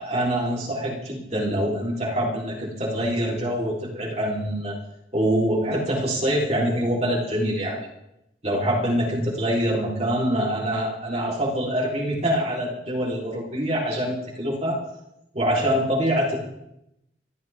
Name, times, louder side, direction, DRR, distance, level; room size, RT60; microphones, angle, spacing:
voice 1, 0.0-4.8 5.1-7.8 8.4-14.8 15.3-16.4, equal, 35° right, -3 dB, 4.0 m, -25 dB
29.0 x 12.5 x 3.7 m, 0.83 s
head